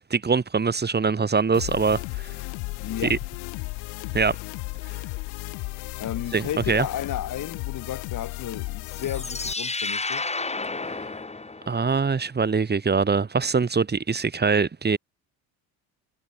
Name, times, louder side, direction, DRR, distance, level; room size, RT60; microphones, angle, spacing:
voice 1, 0.1-2.3 3.1-3.2 4.1-4.4 6.3-6.9 11.7-15.0, right 5 dB, 25° right, 4.4 m, -23 dB
sound 1, 1.5-9.5, left 30 dB, 90° left, 3.2 m, -34 dB
voice 2, 2.7-3.2 6.0-10.3, left 10 dB, 50° left, 4.9 m, -33 dB
sound 2, 8.9-12.0, left 3 dB, 15° left, 5.9 m, -31 dB
cardioid pair, 100°, 38 cm